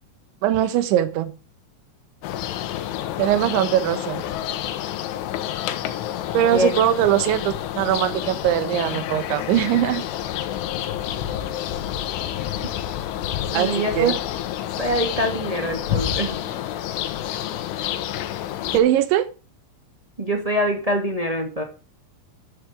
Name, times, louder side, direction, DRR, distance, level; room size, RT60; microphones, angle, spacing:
voice 1, 0.4-1.4 3.2-4.3 6.3-10.0 13.5-14.2 18.7-19.3, right 12 dB, 75° right, 3.5 m, -21 dB
sound 1, 2.2-18.8, left 11 dB, 80° left, 3.7 m, -29 dB
voice 2, 13.5-14.1 14.8-16.4 20.2-21.6, equal, 40° right, 0.5 m, -24 dB
12.0 x 11.5 x 3.5 m
omnidirectional pair, 5.6 m